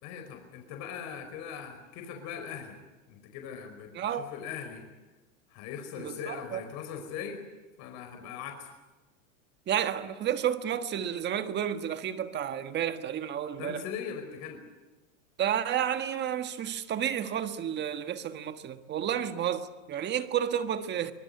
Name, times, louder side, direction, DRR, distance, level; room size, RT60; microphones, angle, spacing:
voice 1, 0.0-2.8 3.1-4.8 5.5-7.4 7.8-8.7 13.6-14.6, left 7 dB, 45° left, 5.0 m, -40 dB
voice 2, 3.9-4.3 6.0-6.6 9.7-13.8 15.4-21.1, right 9 dB, 30° right, 1.5 m, -31 dB
24.0 x 20.0 x 9.7 m
supercardioid pair, 140°, 38 cm